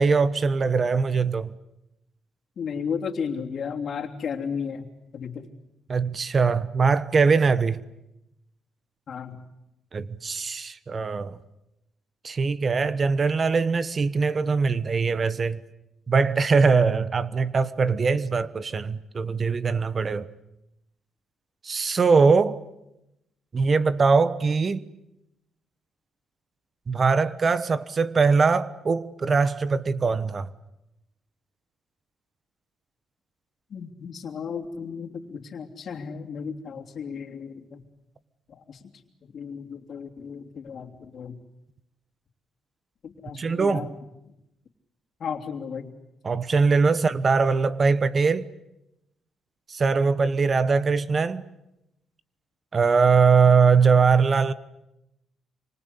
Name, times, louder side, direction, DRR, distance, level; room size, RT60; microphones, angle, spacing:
voice 1, 0.0-1.5 5.9-7.8 9.9-11.4 12.2-15.6 16.1-20.3 21.6-22.6 23.5-24.8 26.9-30.5 43.3-43.9 46.2-48.5 49.7-51.5 52.7-54.5, right 5 dB, 40° right, 1.1 m, -21 dB
voice 2, 2.6-4.9 5.1-5.5 9.1-9.4 33.7-37.8 38.6-38.8 39.2-41.3 43.0-43.9 45.2-45.9, left 6 dB, 55° left, 3.2 m, -34 dB
28.0 x 25.0 x 8.2 m
cardioid pair, 90°, 0 cm